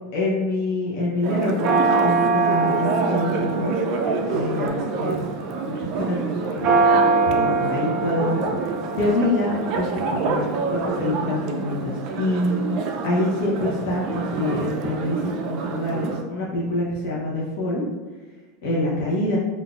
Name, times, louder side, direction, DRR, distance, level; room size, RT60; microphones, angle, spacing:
voice 1, 0.1-3.8 4.3-5.3 5.6-6.9 7.3-8.4 9.0-10.4 10.7-12.6 13.0-17.8 18.6-19.4, left 1 dB, 65° left, -5 dB, 0.8 m, -26 dB
Church bell, 1.2-16.2, right 4 dB, 45° right, 0.4 m, -24 dB
3.8 x 2.5 x 2.4 m, 1.3 s
supercardioid pair, 145°, 0 cm